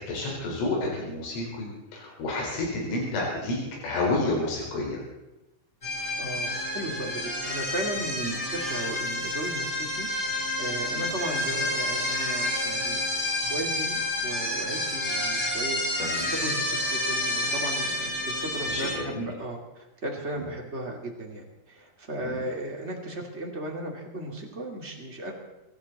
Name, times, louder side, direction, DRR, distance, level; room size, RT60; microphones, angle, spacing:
voice 1, 0.1-5.0 8.2-8.4 10.9-11.1 16.0-16.3 18.7-19.3 20.4-20.5 22.2-22.4, left 2 dB, 85° left, -3 dB, 7.1 m, -30 dB
sound 1, 5.8-18.9, left 1 dB, 10° left, 6.6 m, -29 dB
voice 2, 6.2-13.0 13.5-15.8 16.2-25.3, right 1 dB, 30° right, 0 dB, 1.2 m, -36 dB
24.0 x 14.5 x 4.2 m, 0.96 s
omnidirectional pair, 5.6 m